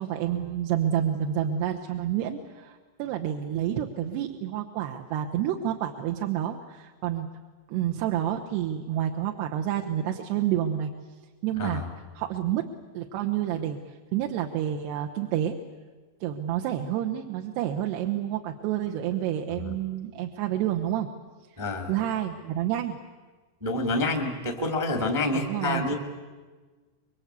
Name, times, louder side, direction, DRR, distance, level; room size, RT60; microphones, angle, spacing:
voice 1, 0.0-7.3 7.7-10.9 11.4-11.8 12.1-15.6 16.2-21.1 21.5-23.0 25.3-25.9, right 11 dB, 75° right, 2 dB, 2.9 m, -29 dB
voice 2, 11.6-11.9 21.6-21.9 23.6-25.9, left 2 dB, 10° right, 3 dB, 0.8 m, -27 dB
26.0 x 23.0 x 8.3 m, 1.4 s
omnidirectional pair, 5.3 m